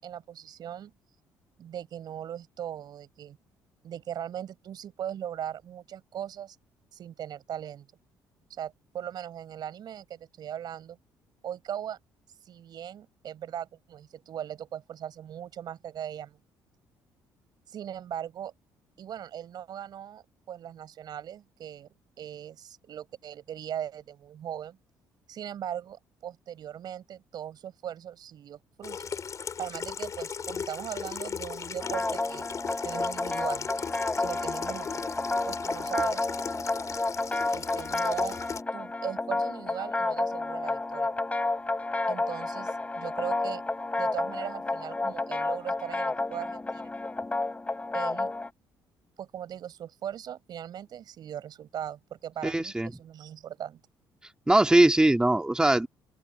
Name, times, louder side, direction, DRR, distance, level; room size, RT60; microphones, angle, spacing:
voice 1, 0.0-0.9 1.6-3.4 3.8-6.6 6.9-7.9 8.5-11.0 11.4-12.0 12.5-16.4 17.7-18.5 19.0-21.9 22.2-24.8 25.3-29.2 29.6-32.5 32.8-33.7 34.2-35.0 35.4-36.3 37.5-38.4 38.7-41.1 42.1-43.6 44.0-46.9 47.9-48.3 49.2-53.8, right 10 dB, 60° right, 5.1 m, -39 dB
Water tap faucet / Sink (filling or washing), 28.8-38.6, left 6 dB, 40° left, 3.6 m, -37 dB
sound 1, 31.8-48.5, left 2 dB, 15° left, 6.4 m, -31 dB
voice 2, 52.4-52.9 54.5-55.9, right 1 dB, 10° right, 2.6 m, -21 dB
open air
supercardioid pair, 85°, 8 cm